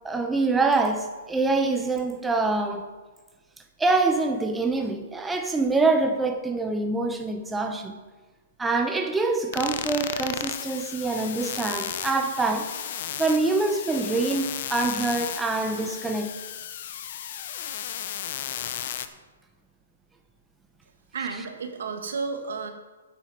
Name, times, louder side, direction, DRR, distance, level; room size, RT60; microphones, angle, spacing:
voice 1, 0.0-2.9 3.8-8.0 8.6-12.7 13.2-16.3, right 3 dB, 10° right, 5 dB, 0.8 m, -25 dB
sound 1, 9.5-19.1, left 10 dB, 55° left, 0.8 m, -34 dB
voice 2, 21.1-22.7, right 4 dB, 75° right, 5 dB, 1.6 m, -32 dB
8.9 x 7.8 x 6.1 m, 1.3 s
hypercardioid pair, 135°, 0 cm